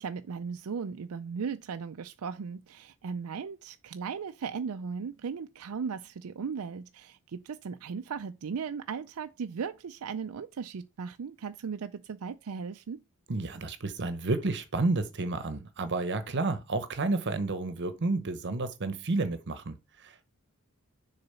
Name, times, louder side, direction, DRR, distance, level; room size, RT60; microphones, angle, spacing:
voice 1, 0.0-13.0, right 6 dB, 75° right, 0.4 m, -37 dB
voice 2, 13.3-20.2, right 3 dB, 55° right, 0.9 m, -31 dB
6.9 x 4.0 x 5.5 m
head